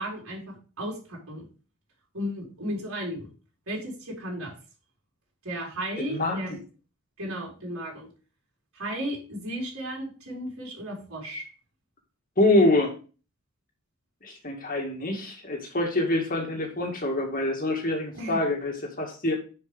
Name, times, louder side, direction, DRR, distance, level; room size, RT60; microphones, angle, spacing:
voice 1, 0.0-1.5 2.1-3.3 3.7-4.5 5.4-6.6 7.2-8.1 8.7-11.5 18.1-18.4, equal, 70° right, -3 dB, 4.1 m, -34 dB
voice 2, 6.0-6.6 12.4-12.9 14.2-19.3, left 2 dB, 40° left, 1 dB, 2.0 m, -25 dB
9.9 x 5.2 x 3.5 m, 0.36 s
head